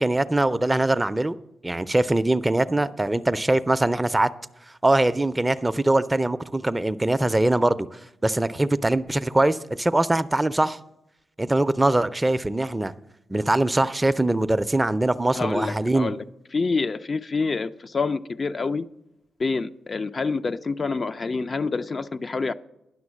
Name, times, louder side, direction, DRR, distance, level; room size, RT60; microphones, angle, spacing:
voice 1, 0.0-1.4 1.6-4.3 4.8-7.9 8.2-10.8 11.4-12.9 13.3-16.1, right 2 dB, 20° right, 0.5 m, -22 dB
voice 2, 15.3-16.2 16.5-18.9 19.4-22.5, left 4 dB, 45° left, 0.5 m, -27 dB
10.5 x 6.1 x 7.2 m
supercardioid pair, 55°, 0 cm